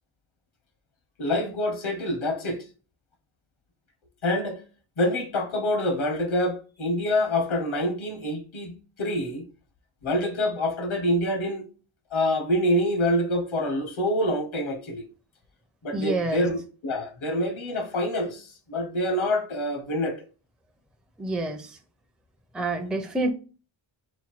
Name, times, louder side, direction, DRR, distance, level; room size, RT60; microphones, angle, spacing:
voice 1, 1.2-2.6 4.2-4.6 5.0-9.4 10.0-11.7 12.1-15.0 15.8-20.2, left 1 dB, 75° left, 1.1 m, -26 dB
voice 2, 15.9-16.5 21.2-21.8 22.5-23.3, right 2 dB, ahead, 0.5 m, -28 dB
4.4 x 2.2 x 4.2 m
wide cardioid pair, 100°, 48 cm